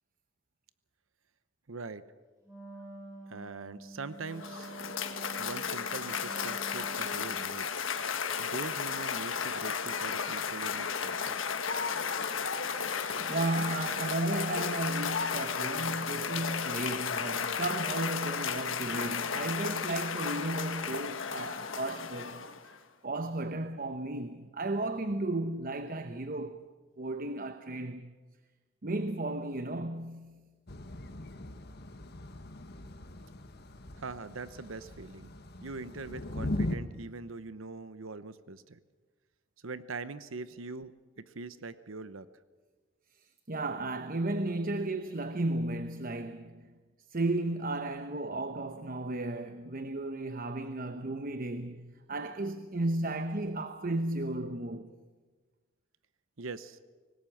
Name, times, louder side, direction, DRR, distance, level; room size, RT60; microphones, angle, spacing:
voice 1, 1.7-2.0 3.3-4.8 5.4-7.7 8.4-11.4 34.0-35.3 35.6-38.8 39.6-42.3 56.4-56.8, right 3 dB, 80° right, 0.9 m, -42 dB
Wind instrument woodwind instrument, 2.4-7.6, right 2 dB, 15° right, 7.9 m, -48 dB
Cheering / Applause, 4.1-22.8, left 6 dB, 70° left, 1.4 m, -34 dB
voice 2, 13.3-22.4 23.0-26.7 27.0-28.1 28.8-30.5 43.2-46.7 47.1-54.9, right 2 dB, 45° right, 0.9 m, -34 dB
Thunder / Rain, 30.7-36.8, left 1 dB, 50° left, 1.5 m, -39 dB
25.0 x 19.5 x 7.2 m
head